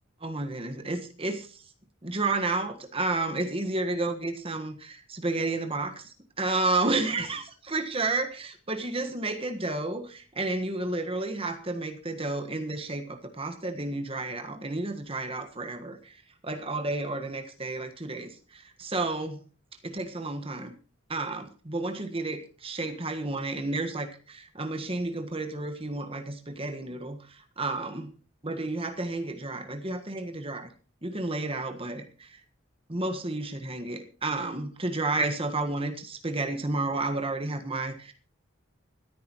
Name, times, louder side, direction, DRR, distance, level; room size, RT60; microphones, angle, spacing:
voice 1, 0.2-1.6 2.0-16.2 16.4-19.4 19.8-20.8 21.1-28.1 28.4-30.7 31.0-32.4 32.9-38.1, right 2 dB, 25° right, 6 dB, 1.5 m, -31 dB
25.0 x 9.5 x 3.1 m, 0.38 s
head